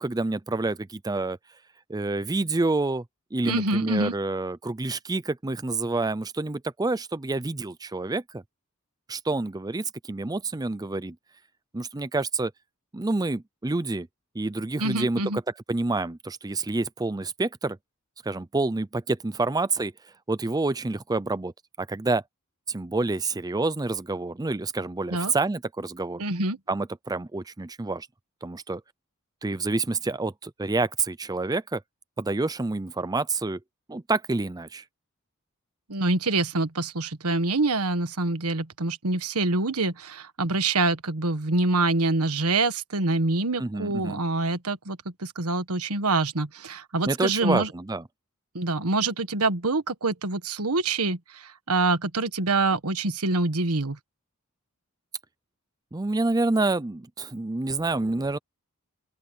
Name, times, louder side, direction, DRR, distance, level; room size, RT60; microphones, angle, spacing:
voice 1, 0.0-1.4 1.9-3.0 3.3-8.4 9.1-11.2 11.7-12.5 12.9-14.1 14.3-15.2 15.7-17.8 18.2-19.9 20.3-21.5 21.8-22.2 22.7-26.2 26.7-28.1 28.4-28.8 29.4-31.8 32.2-33.6 33.9-34.8 43.6-44.2 47.1-48.0 55.9-58.4, right 3 dB, 15° right, 0.5 m, -28 dB
voice 2, 3.4-4.1 14.8-15.4 25.1-25.3 26.2-26.6 35.9-47.7 48.5-54.0, right 3 dB, 80° right, 1.5 m, -26 dB
open air
head